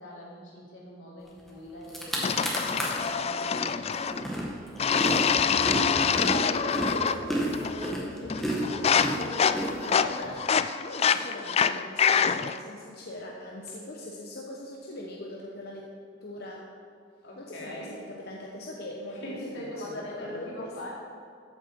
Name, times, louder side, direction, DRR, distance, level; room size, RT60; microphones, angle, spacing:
voice 1, 0.0-4.1 7.6-10.1 17.2-17.9 19.2-20.9, left 1 dB, 85° left, -5 dB, 3.6 m, -42 dB
sound 1, 1.5-1.6 1.8-3.1 3.5-10.3, right 1 dB, ahead, 2.0 m, -32 dB
sound 2, 2.2-4.3 4.8-7.2 7.5-8.0 8.3-12.6, left 7 dB, 35° left, 0.4 m, -26 dB
voice 2, 6.2-8.7 9.8-10.4 10.7-15.9 16.2-16.7 17.4-20.8, left 1 dB, 60° left, -2 dB, 1.1 m, -40 dB
14.0 x 9.1 x 4.6 m, 2.2 s
head